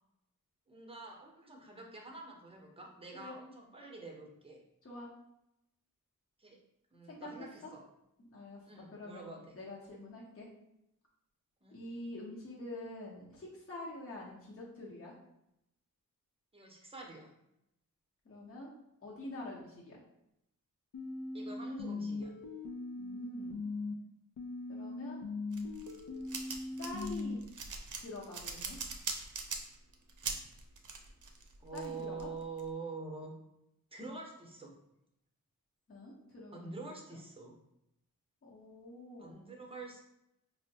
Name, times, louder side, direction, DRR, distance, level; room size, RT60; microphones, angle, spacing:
voice 1, 0.7-4.6 6.4-6.6 6.9-7.8 8.7-9.6 11.6-11.8 16.5-17.3 21.3-22.3 31.6-33.3 33.9-34.7 36.5-37.5 39.2-40.0, right 3 dB, 15° right, 0 dB, 0.7 m, -46 dB
voice 2, 8.2-8.6 8.9-10.5 11.7-15.1 18.2-18.7 19.0-20.0 23.0-23.7 24.7-25.2 26.8-27.4 28.0-28.8 31.7-32.3 35.9-36.6 38.4-39.4, left 2 dB, 40° left, -5 dB, 0.9 m, -46 dB
sound 1, 20.9-23.9 24.4-27.4, left 3 dB, 65° left, 0.5 m, -40 dB
sound 2, 25.5-32.6, right 4 dB, 60° right, 0.5 m, -41 dB
4.3 x 2.1 x 2.8 m, 0.83 s
wide cardioid pair, 75°, 34 cm